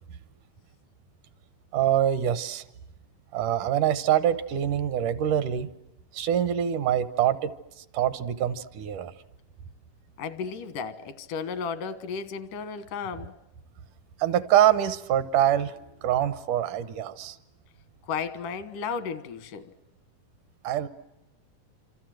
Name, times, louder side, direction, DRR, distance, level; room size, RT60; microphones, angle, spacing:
voice 1, 1.7-2.6 3.3-5.7 6.1-7.5 7.9-9.1 14.2-17.4 20.6-20.9, right 10 dB, 80° right, 2.6 m, -25 dB
voice 2, 10.2-13.3 18.0-19.7, left 6 dB, 85° left, 3.0 m, -34 dB
27.0 x 26.5 x 7.7 m
omnidirectional pair, 3.6 m